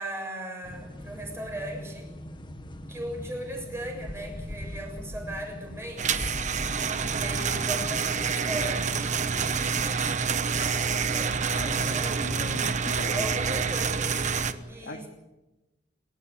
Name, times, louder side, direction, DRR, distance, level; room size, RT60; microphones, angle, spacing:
voice 1, 0.0-2.1 2.9-6.8 7.1-12.6 13.1-15.1, right 1 dB, 15° right, 2 dB, 7.1 m, -38 dB
sound 1, 0.6-14.4, equal, 25° left, 1.6 m, -42 dB
sound 2, 6.0-14.5, right 6 dB, 40° right, 1.1 m, -27 dB
voice 2, 11.5-13.3 13.5-13.7 14.8-15.0, left 1 dB, 75° left, 4 dB, 2.5 m, -39 dB
28.0 x 13.5 x 8.5 m, 1.1 s
head